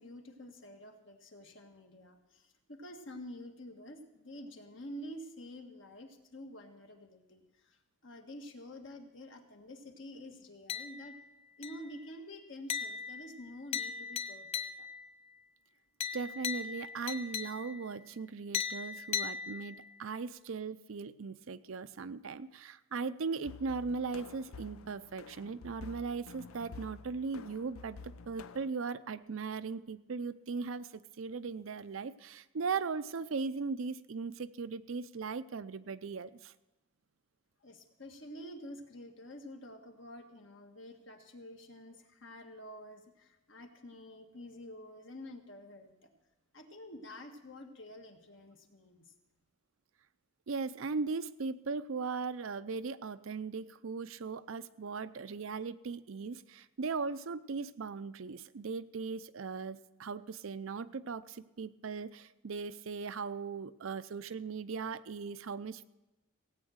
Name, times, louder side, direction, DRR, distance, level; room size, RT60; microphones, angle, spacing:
voice 1, 0.0-7.8 8.0-11.2 11.6-14.9 37.6-46.1 46.5-49.1, left 1 dB, 65° left, 4 dB, 1.6 m, -49 dB
sound 1, 10.7-11.3 11.6-12.0 12.7-15.1 16.0-17.9 18.5-20.0, left 7 dB, 30° left, 0.4 m, -38 dB
voice 2, 16.1-36.5 50.5-65.8, right 4 dB, 75° right, 13 dB, 0.5 m, -38 dB
sound 2, 23.4-28.7, left 4 dB, 85° left, 0.5 m, -50 dB
17.0 x 8.9 x 6.4 m, 0.98 s
head